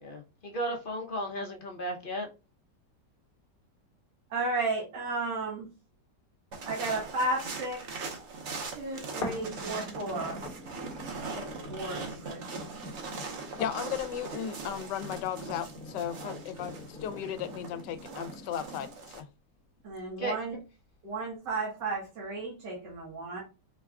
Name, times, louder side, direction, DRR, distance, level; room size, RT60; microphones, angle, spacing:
voice 1, 0.0-2.3 20.2-20.4, right 1 dB, 55° left, 1 dB, 0.6 m, -34 dB
voice 2, 4.3-5.7 6.7-8.2 8.7-10.4 11.2-12.4 19.8-20.6 21.0-23.4, right 2 dB, 80° right, -4 dB, 2.0 m, -34 dB
sound 1, 6.5-19.2, right 4 dB, 50° right, 0.9 m, -41 dB
sound 2, 9.2-19.2 19.8-19.9, left 2 dB, 40° left, 1.0 m, -44 dB
voice 3, 13.6-19.3, left 9 dB, 80° left, 11 dB, 1.2 m, -36 dB
4.5 x 2.2 x 3.5 m, 0.30 s
omnidirectional pair, 1.9 m